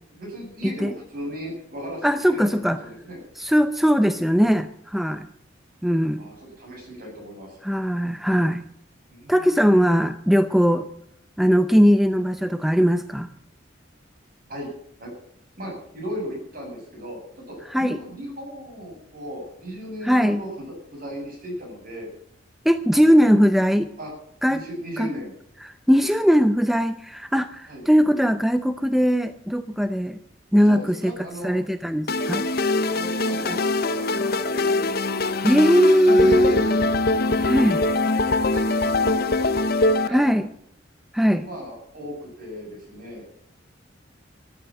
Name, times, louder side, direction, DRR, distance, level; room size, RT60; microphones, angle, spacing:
voice 1, 0.1-3.2 6.2-7.6 9.1-10.0 14.5-14.7 15.0-15.1 15.6-22.1 22.9-23.3 24.0-24.1 24.5-25.3 27.7-27.8 30.6-31.5 32.9-34.7 36.3-36.7 37.2-40.3 41.4-43.2, equal, 50° right, 0 dB, 7.9 m, -37 dB
voice 2, 2.0-2.8 3.4-5.3 5.8-6.2 7.6-8.6 9.3-10.9 11.4-13.3 17.7-18.0 20.0-20.4 22.6-23.9 24.4-24.6 25.0-25.1 25.6-30.2 30.5-31.1 31.4-32.5 33.4-33.6 35.4-36.6 37.4-37.8 40.1-40.5 41.1-41.4, equal, ahead, 10 dB, 0.6 m, -20 dB
sound 1, 32.1-40.1, left 2 dB, 55° left, 0.9 m, -23 dB
14.0 x 11.0 x 7.7 m, 0.71 s
head